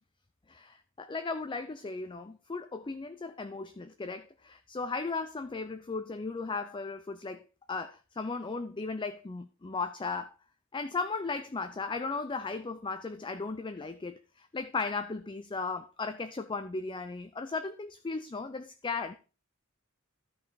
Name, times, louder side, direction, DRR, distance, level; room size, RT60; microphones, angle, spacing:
voice 1, 0.5-10.3 10.7-19.1, left 4 dB, 25° left, 0.5 m, -36 dB
12.5 x 5.5 x 4.0 m
head